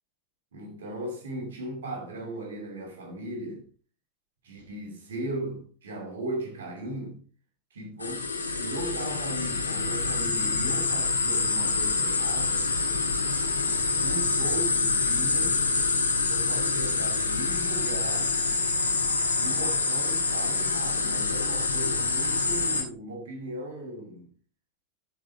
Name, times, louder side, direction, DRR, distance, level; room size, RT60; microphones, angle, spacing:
voice 1, 0.5-3.7 4.4-7.2 7.7-8.2 8.6-12.7 14.0-15.6 16.1-18.3 19.4-24.3, right 1 dB, 60° right, 2.4 m, -37 dB
sound 1, 8.0-22.8, left 4 dB, 80° left, 1.8 m, -26 dB
12.5 x 5.1 x 4.4 m
figure-of-eight pair, 90°, 0 cm